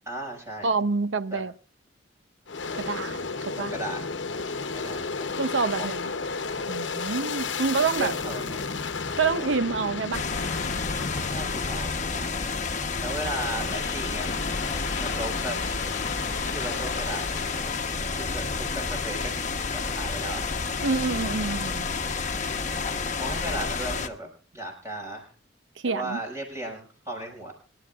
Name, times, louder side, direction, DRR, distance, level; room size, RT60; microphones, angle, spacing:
voice 1, 0.1-0.7 1.3-1.4 3.6-4.0 4.7-5.4 5.7-5.9 7.9-8.7 11.2-12.3 13.0-14.3 15.0-15.6 16.4-17.4 18.2-19.3 19.7-20.4 22.4-25.3 25.8-27.5, right 1 dB, 15° right, 5.8 m, -36 dB
voice 2, 0.6-1.5 2.7-3.7 5.4-6.1 6.7-8.1 9.2-10.3 20.8-21.9 25.8-26.2, right 4 dB, 80° right, 0.7 m, -27 dB
Aircraft, 2.5-12.5 13.0-17.9, left 4 dB, 75° left, 0.9 m, -34 dB
sound 1, 10.1-24.1, left 4 dB, 40° left, 1.1 m, -30 dB
25.5 x 12.0 x 2.4 m
head